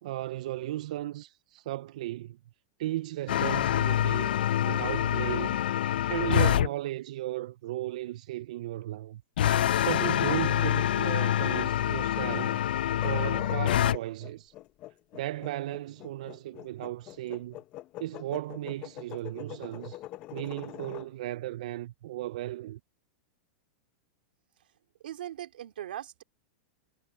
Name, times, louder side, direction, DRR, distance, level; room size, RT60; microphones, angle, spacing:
voice 1, 0.0-2.4 2.8-4.4 4.6-5.6 6.1-9.2 9.9-12.6 13.0-14.5 15.1-17.6 18.0-20.0 20.3-22.8, right 15 dB, 50° right, 0.3 m, -35 dB
sound 1, 3.3-6.7 9.4-14.0, left 11 dB, 85° left, 0.4 m, -26 dB
sound 2, 12.9-21.1, left 15 dB, 25° left, 0.7 m, -44 dB
voice 2, 25.0-26.2, right 12 dB, 90° right, 2.8 m, -39 dB
supercardioid pair, 180°, 5 cm